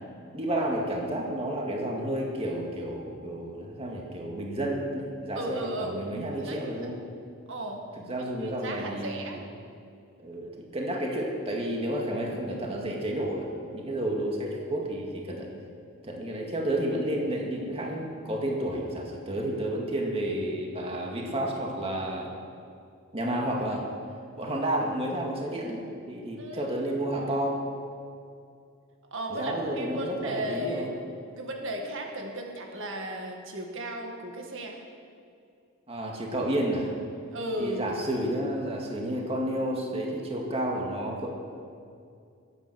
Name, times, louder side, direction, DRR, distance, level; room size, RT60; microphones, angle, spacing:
voice 1, 0.3-7.0 8.1-9.4 10.2-15.5 16.0-22.3 23.1-23.8 24.4-25.8 26.1-27.6 29.3-30.9 35.9-36.9 37.6-41.3, right 1 dB, 30° right, -1 dB, 2.0 m, -31 dB
voice 2, 5.4-6.9 7.5-7.8 8.2-9.4 26.4-26.7 29.1-30.9 31.3-34.8 37.3-37.8, right 1 dB, 60° right, 1 dB, 1.9 m, -35 dB
21.5 x 9.4 x 6.2 m, 2.4 s
head